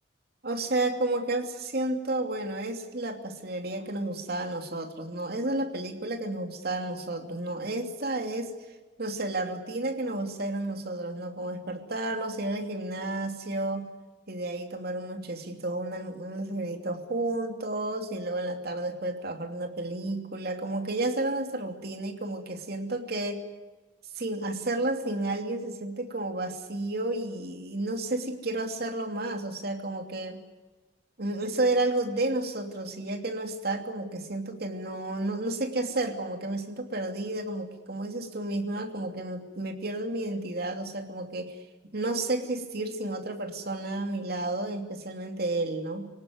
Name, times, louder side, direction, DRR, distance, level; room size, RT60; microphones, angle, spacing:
voice 1, 0.4-8.5 9.0-13.9 14.3-23.4 24.1-30.4 31.2-41.6 41.9-46.1, right 2 dB, 55° right, 5 dB, 2.8 m, -31 dB
26.0 x 18.0 x 9.6 m, 1.2 s
head